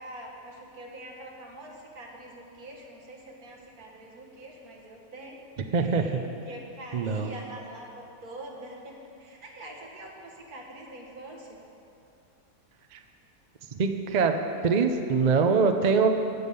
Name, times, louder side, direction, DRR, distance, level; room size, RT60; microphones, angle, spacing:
voice 1, 0.0-5.4 5.7-6.2 6.5-11.6, right 1 dB, 70° right, -2 dB, 2.1 m, -44 dB
voice 2, 5.7-6.2 6.9-7.3 12.9-13.0 13.7-14.4 14.6-16.2, right 5 dB, 55° right, 6 dB, 0.5 m, -23 dB
16.0 x 5.5 x 6.8 m, 2.8 s
omnidirectional pair, 1.6 m